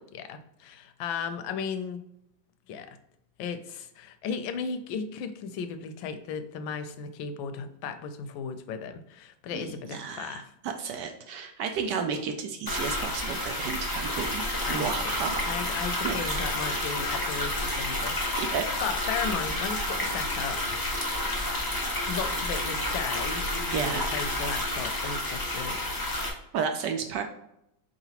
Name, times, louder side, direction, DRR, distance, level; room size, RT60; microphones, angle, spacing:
voice 1, 0.1-2.0 2.7-3.0 3.4-10.5 14.6-20.7 22.1-25.8, left 6 dB, 85° left, 9 dB, 1.3 m, -36 dB
voice 2, 9.5-14.4 14.7-16.4 18.4-18.7 23.7-24.1 26.5-27.2, right 6 dB, 75° right, 5 dB, 1.1 m, -32 dB
sound 1, 12.7-26.3, left 1 dB, 25° left, 0.4 m, -30 dB
4.5 x 3.8 x 2.9 m, 0.78 s
omnidirectional pair, 2.1 m